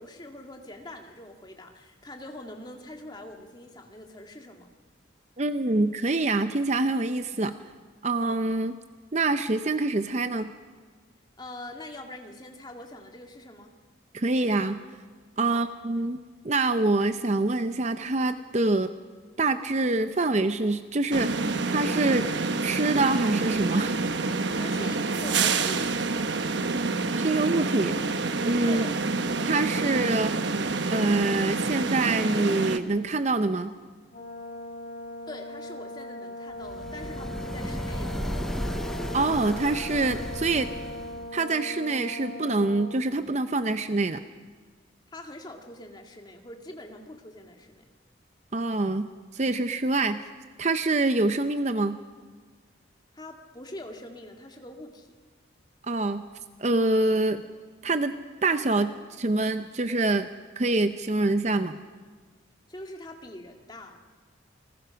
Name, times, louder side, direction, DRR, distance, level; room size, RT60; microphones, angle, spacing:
voice 1, 0.0-4.7 11.4-13.7 15.5-15.6 24.6-26.3 28.7-29.0 35.3-38.2 45.1-47.9 53.1-55.1 62.7-64.0, left 1 dB, 20° left, 3 dB, 2.0 m, -43 dB
voice 2, 5.4-7.6 8.0-8.8 9.1-10.5 14.1-14.8 15.4-16.2 16.4-18.9 19.4-21.3 21.7-22.3 22.6-24.0 27.1-28.8 29.5-30.4 30.9-33.7 39.1-40.7 41.3-44.2 48.5-49.1 49.3-50.2 50.6-52.0 55.9-56.3 56.6-57.4 57.8-58.1 58.4-60.3 60.6-61.8, right 2 dB, 35° right, 10 dB, 0.6 m, -25 dB
sound 1, 21.1-32.8, right 3 dB, 70° right, 1.0 m, -27 dB
Brass instrument, 34.1-43.0, left 1 dB, 45° left, 5.7 m, -39 dB
sound 2, 36.6-41.4, equal, ahead, 0.6 m, -34 dB
29.0 x 20.5 x 5.8 m, 1.5 s
head